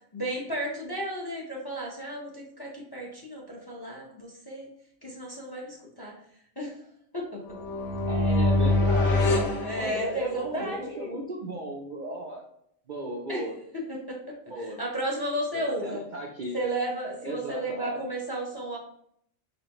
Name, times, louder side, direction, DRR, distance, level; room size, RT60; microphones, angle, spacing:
voice 1, 0.1-4.7 5.0-6.1 6.6-6.8 7.1-7.6 9.6-11.2 13.3-13.4 13.7-14.2 14.6-16.0 16.5-18.8, right 1 dB, 25° left, -2 dB, 0.7 m, -33 dB
sound 1, 7.5-10.5, left 2 dB, 60° left, 0.9 m, -25 dB
voice 2, 8.1-9.5 9.7-12.4 12.9-13.5 14.5-14.8 15.5-16.5 17.2-18.0, right 1 dB, 55° right, -1 dB, 0.6 m, -35 dB
4.3 x 3.4 x 2.9 m, 0.69 s
omnidirectional pair, 1.4 m